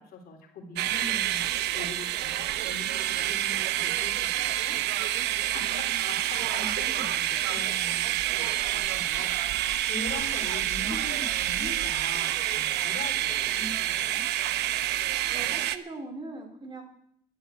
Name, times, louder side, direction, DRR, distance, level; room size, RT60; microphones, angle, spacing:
voice 1, 0.0-1.4 1.7-2.9 3.2-4.8 5.5-14.2, left 2 dB, 65° left, 3 dB, 3.1 m, -42 dB
sound 1, 0.8-15.8, right 13 dB, 80° right, 0.8 m, -28 dB
voice 2, 5.5-6.3 10.0-10.7 15.3-16.8, right 2 dB, 30° right, 4 dB, 3.8 m, -43 dB
11.0 x 11.0 x 8.0 m, 0.70 s
cardioid pair, 110°, 17 cm